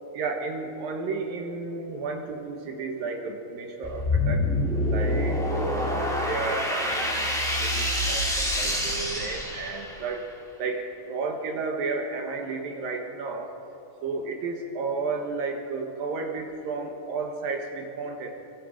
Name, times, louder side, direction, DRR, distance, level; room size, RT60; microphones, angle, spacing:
voice 1, 0.1-4.5 4.9-7.3 7.6-10.2 10.6-13.5 14.0-18.3, right 4 dB, 75° right, 2 dB, 3.3 m, -32 dB
sound 1, 3.8-10.1, left 1 dB, ahead, 3.4 m, -26 dB
29.5 x 23.0 x 5.2 m, 2.9 s
omnidirectional pair, 4.1 m